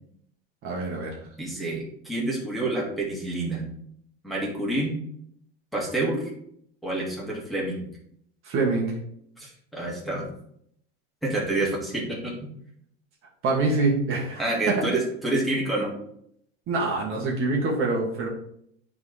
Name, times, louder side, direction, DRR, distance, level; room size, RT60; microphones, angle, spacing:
voice 1, 0.6-1.2 8.4-8.9 13.4-14.4 16.7-18.3, right 3 dB, 45° right, -2 dB, 1.6 m, -25 dB
voice 2, 1.4-3.6 4.2-5.0 5.7-6.3 6.8-7.9 9.4-10.3 11.2-12.3 14.4-15.9, right 2 dB, ahead, -5 dB, 2.2 m, -28 dB
9.0 x 3.7 x 3.4 m, 0.69 s
supercardioid pair, 125°, 31 cm